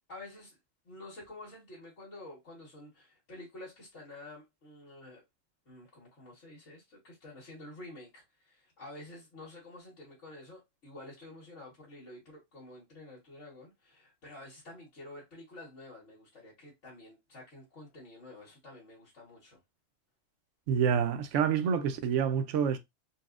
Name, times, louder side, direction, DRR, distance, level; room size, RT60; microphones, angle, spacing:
voice 1, 0.1-0.6 0.8-5.2 5.6-19.6, left 2 dB, 70° left, 1.7 m, -49 dB
voice 2, 20.7-22.8, right 7 dB, 75° right, 0.9 m, -27 dB
4.0 x 2.2 x 2.4 m
omnidirectional pair, 1.3 m